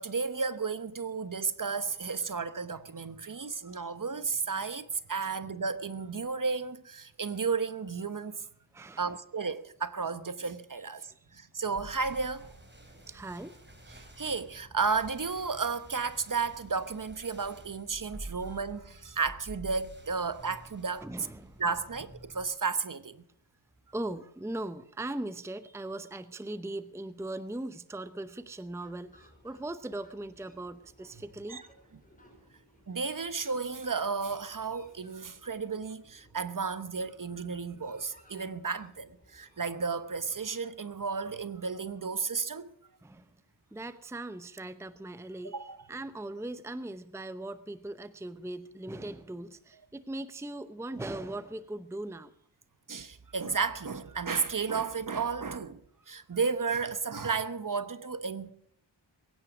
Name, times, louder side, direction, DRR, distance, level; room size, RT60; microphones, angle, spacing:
voice 1, 0.0-8.4 9.0-12.5 13.9-21.0 21.6-23.2 31.5-31.6 32.9-42.7 45.4-45.8 52.9-55.8 56.1-58.5, right 5 dB, 40° right, 1.1 m, -33 dB
voice 2, 8.7-9.0 11.1-11.2 13.1-13.6 18.3-18.4 21.0-21.6 23.9-31.6 43.0-43.3 43.7-52.3, right 1 dB, 5° right, 0.7 m, -39 dB
sound 1, 11.8-22.5, right 1 dB, 20° right, 3.8 m, -50 dB
Fowl, 28.1-41.1, equal, 15° left, 4.9 m, -62 dB
21.5 x 9.9 x 6.1 m
cardioid pair, 65°, 47 cm